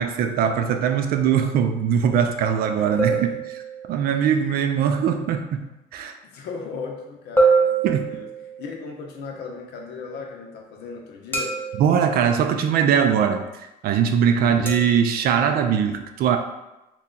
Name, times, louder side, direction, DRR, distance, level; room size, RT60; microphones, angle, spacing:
voice 1, 0.0-3.2 3.9-6.2 7.8-8.1 11.8-13.5 13.8-16.4, right 7 dB, 65° right, 6 dB, 0.4 m, -21 dB
voice 2, 2.8-3.4 4.3-4.6 6.3-8.3 8.6-11.6 14.4-14.7, left 4 dB, 80° left, 1 dB, 0.7 m, -37 dB
sound 1, 3.0-4.1 7.4-8.8 11.3-12.1 14.7-15.0, right 4 dB, 10° left, 0.6 m, -23 dB
2.9 x 2.3 x 3.7 m, 0.97 s
cardioid pair, 110°, 17 cm